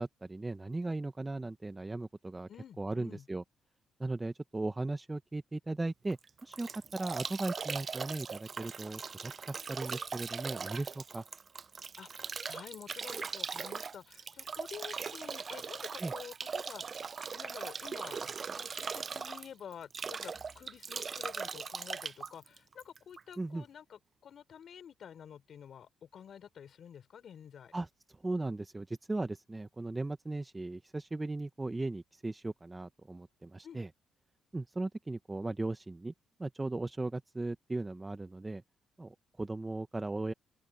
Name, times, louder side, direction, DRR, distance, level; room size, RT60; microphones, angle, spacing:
voice 1, 0.0-2.5 2.8-3.4 4.0-11.2 16.0-16.1 23.4-23.6 27.7-33.9 34.5-36.1 36.4-38.6 39.0-40.3, right 2 dB, 15° right, 0.9 m, -37 dB
voice 2, 2.5-3.2 12.0-17.0 17.3-27.7 33.6-33.8, left 8 dB, 60° left, 5.0 m, -50 dB
Bathtub (filling or washing) / Drip / Trickle dribble, 6.1-23.3, right 5 dB, 40° right, 0.5 m, -40 dB
open air
cardioid pair, 90°, 0 cm